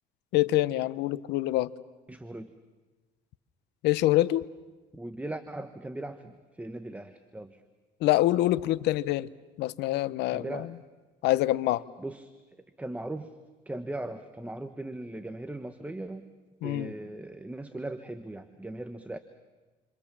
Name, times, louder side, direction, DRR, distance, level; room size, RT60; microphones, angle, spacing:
voice 1, 0.3-1.7 3.8-4.5 8.0-9.3 9.6-10.7 11.2-11.8 16.6-16.9, left 16 dB, 85° left, 17 dB, 0.8 m, -25 dB
voice 2, 2.1-2.5 4.9-7.6 10.3-10.7 12.0-12.3 12.6-13.3 13.7-16.3 16.6-19.2, right 1 dB, 10° right, 9 dB, 1.1 m, -39 dB
28.5 x 26.0 x 7.3 m, 1.2 s
cardioid pair, 110°, 17 cm